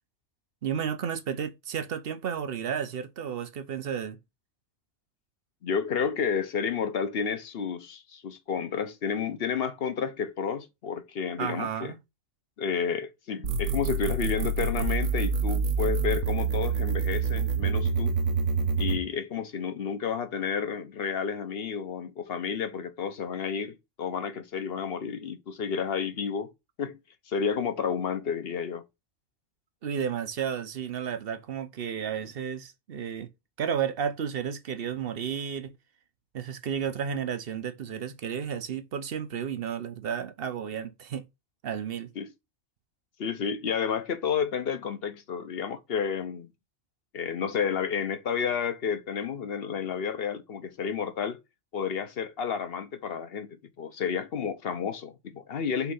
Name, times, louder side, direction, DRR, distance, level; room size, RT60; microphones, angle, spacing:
voice 1, 0.6-4.2 11.4-12.0 29.8-33.3 33.6-35.7 36.3-41.2 41.6-42.1, right 8 dB, 50° right, 0.9 m, -32 dB
voice 2, 5.6-11.9 12.6-18.1 18.8-26.5 26.8-27.0 27.3-28.8 42.2-42.3 43.2-46.5 47.1-51.4 51.7-53.5 53.8-55.9, left 6 dB, 50° left, 1.0 m, -31 dB
sound 1, 13.4-19.0, right 5 dB, 75° right, 1.3 m, -27 dB
6.0 x 3.3 x 5.5 m
omnidirectional pair, 1.5 m